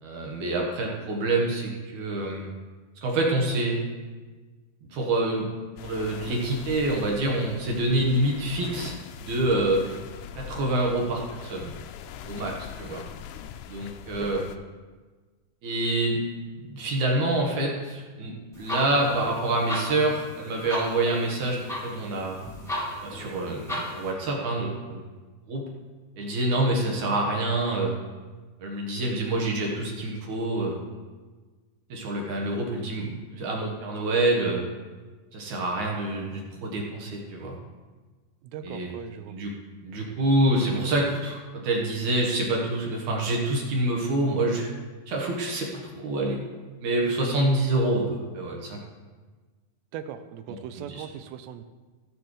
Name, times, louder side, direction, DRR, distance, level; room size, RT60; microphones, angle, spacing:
voice 1, 0.0-2.5 3.0-3.8 4.9-5.5 5.8-9.8 10.4-11.7 12.3-13.0 13.7-14.4 15.6-16.2 16.7-22.4 23.0-25.0 25.5-25.7 26.2-27.9 28.6-30.8 31.9-34.6 35.3-37.6 38.6-38.9 39.3-39.5 39.8-44.7 45.1-46.4 46.8-48.8 50.8-50.9, right 2 dB, 60° right, -1 dB, 2.2 m, -26 dB
sound 1, 5.8-14.6, left 9 dB, 85° left, 2.4 m, -42 dB
sound 2, 18.5-24.1, equal, ahead, 0.7 m, -35 dB
voice 2, 38.4-39.4 49.9-51.7, right 9 dB, 85° right, 10 dB, 2.8 m, -39 dB
16.5 x 7.8 x 3.2 m, 1.3 s
omnidirectional pair, 4.9 m